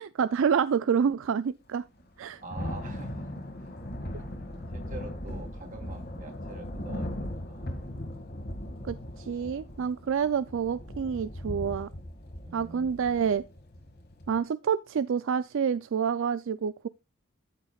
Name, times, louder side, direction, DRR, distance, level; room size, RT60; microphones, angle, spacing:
voice 1, 0.0-1.8 2.2-2.4 8.8-11.9 12.5-13.4 14.3-16.9, right 7 dB, 65° right, 0.4 m, -28 dB
Thunder / Rain, 2.0-14.4, left 1 dB, 50° left, 1.9 m, -39 dB
voice 2, 2.4-7.7 12.4-13.3, right 1 dB, 40° right, 3.1 m, -45 dB
13.5 x 6.3 x 2.3 m
head